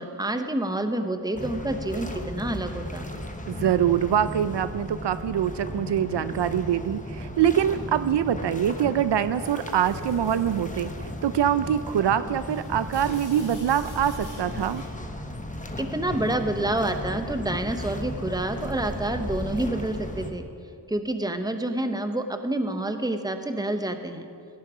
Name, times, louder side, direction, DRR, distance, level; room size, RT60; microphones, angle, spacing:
voice 1, 0.0-3.1 15.8-20.4 20.9-24.2, right 1 dB, 10° right, 7 dB, 0.9 m, -28 dB
sound 1, 1.3-20.3, left 1 dB, 20° left, 1.0 m, -35 dB
voice 2, 3.5-10.9 11.2-14.8, right 9 dB, 75° right, 13 dB, 0.5 m, -24 dB
sound 2, 9.4-15.0, left 1 dB, 45° left, 3.3 m, -45 dB
16.0 x 10.5 x 4.9 m, 2.3 s
wide cardioid pair, 85°, 42 cm